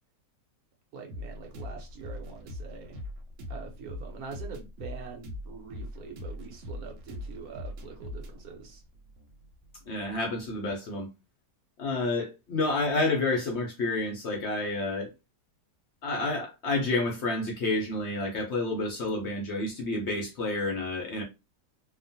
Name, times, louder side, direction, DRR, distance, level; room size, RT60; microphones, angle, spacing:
voice 1, 0.9-3.0 3.5-8.8, right 5 dB, 60° right, 1.2 m, -44 dB
sound 1, 1.1-10.7, left 1 dB, 90° right, 1.3 m, -41 dB
voice 2, 9.8-11.1 11.8-15.1 16.0-21.2, left 2 dB, 75° left, 0.6 m, -29 dB
2.9 x 2.1 x 2.6 m
omnidirectional pair, 1.9 m